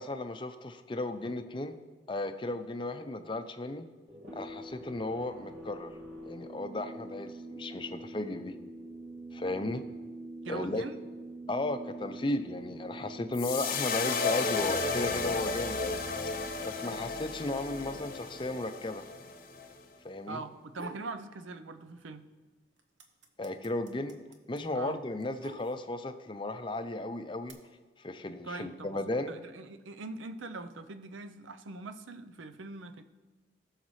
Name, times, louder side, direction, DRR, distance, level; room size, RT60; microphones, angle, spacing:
voice 1, 0.0-1.8 2.1-3.9 4.3-5.9 6.3-8.5 9.3-9.8 10.5-10.8 11.5-15.8 16.7-19.0 20.0-20.4 23.4-24.2 24.5-27.6 28.0-29.3, left 2 dB, 25° left, 9 dB, 0.5 m, -35 dB
sound 1, 4.1-20.4, right 1 dB, 45° right, 2.8 m, -46 dB
voice 2, 10.4-10.9 20.3-22.3 24.7-25.0 28.4-29.0 29.3-33.0, right 3 dB, 90° right, 10 dB, 0.6 m, -42 dB
sound 2, 13.3-19.7, left 4 dB, 45° left, 0.8 m, -33 dB
sound 3, 20.5-21.1 21.5-22.2 22.5-26.1 26.9-27.5, right 2 dB, 70° right, 1.0 m, -50 dB
19.0 x 6.5 x 3.2 m, 1.3 s
head